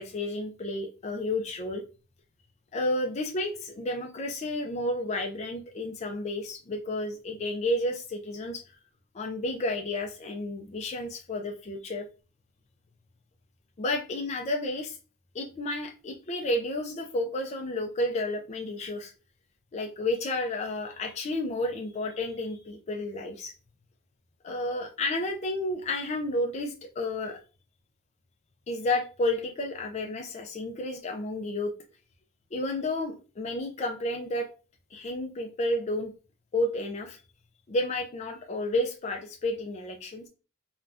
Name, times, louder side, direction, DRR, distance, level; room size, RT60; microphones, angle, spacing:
voice 1, 0.0-1.8 2.7-8.6 9.1-12.1 13.8-15.0 15.3-19.1 19.7-23.5 24.4-27.4 28.7-31.7 32.5-34.5 34.9-36.1 36.5-37.2 37.7-40.3, left 1 dB, 30° left, 2 dB, 0.3 m, -31 dB
3.3 x 2.2 x 2.5 m, 0.33 s
head